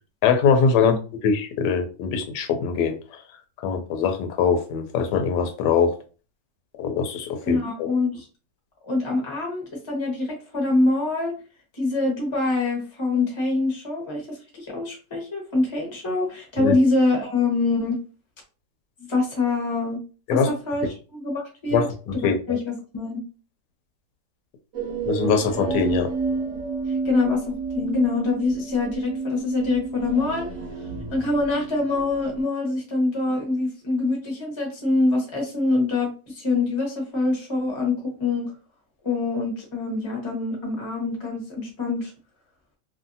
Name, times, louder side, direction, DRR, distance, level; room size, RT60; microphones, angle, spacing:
voice 1, 0.2-1.0 1.2-3.2 3.6-5.9 6.8-7.9 16.6-16.8 20.3-20.5 21.7-22.6 25.0-26.1, left 6 dB, 85° left, 7 dB, 1.2 m, -22 dB
voice 2, 7.4-8.3 8.8-11.3 11.7-18.0 19.0-20.0 20.3-21.9 22.1-23.2 27.0-27.4 27.7-30.5 31.1-38.4 39.0-42.1, left 3 dB, 20° left, -1 dB, 0.8 m, -25 dB
sound 1, 24.7-32.4, right 4 dB, 60° right, 0.8 m, -30 dB
2.6 x 2.6 x 2.6 m, 0.35 s
omnidirectional pair, 1.8 m